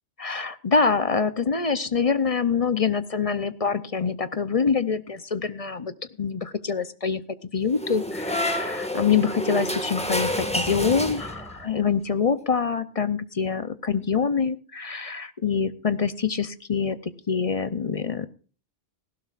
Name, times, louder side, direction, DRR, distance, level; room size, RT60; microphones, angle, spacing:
voice 1, 0.2-7.2 7.5-18.3, left 5 dB, 40° left, 13 dB, 0.7 m, -25 dB
sound 1, 7.7-11.6, left 1 dB, 5° left, 1.8 m, -29 dB
18.5 x 16.0 x 2.5 m, 0.38 s
omnidirectional pair, 1.1 m